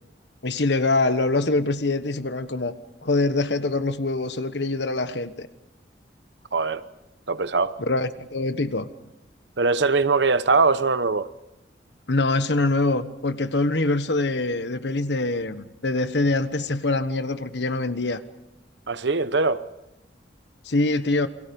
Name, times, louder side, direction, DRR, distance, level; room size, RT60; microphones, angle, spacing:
voice 1, 0.4-2.7 3.0-5.5 7.8-8.9 12.1-18.2 20.6-21.3, left 2 dB, 70° left, 1.3 m, -24 dB
voice 2, 6.5-6.8 7.3-7.7 9.6-11.3 18.9-19.6, right 4 dB, 75° right, 0.9 m, -21 dB
29.0 x 23.5 x 5.4 m
head